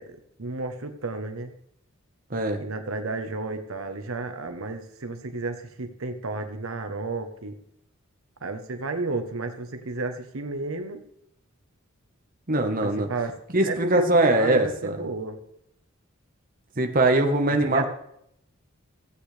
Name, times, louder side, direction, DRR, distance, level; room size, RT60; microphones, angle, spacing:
voice 1, 0.0-1.5 2.6-7.5 8.4-11.0 12.8-13.3 13.6-15.4 17.6-17.9, right 3 dB, 80° right, 7 dB, 1.0 m, -32 dB
voice 2, 2.3-2.6 12.5-13.1 13.5-15.0 16.8-17.9, right 2 dB, 45° right, 4 dB, 1.2 m, -22 dB
16.0 x 8.3 x 3.3 m, 0.73 s
head